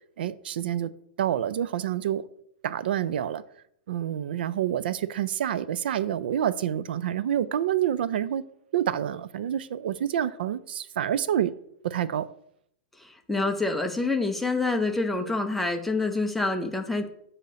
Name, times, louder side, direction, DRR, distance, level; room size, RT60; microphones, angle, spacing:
voice 1, 0.2-0.9 1.2-2.3 2.6-3.4 3.9-8.4 8.7-11.5 11.8-12.3, right 10 dB, 80° right, 0.3 m, -27 dB
voice 2, 13.0-17.1, left 3 dB, 5° left, 0.5 m, -27 dB
6.9 x 2.8 x 5.0 m
supercardioid pair, 160°, 5 cm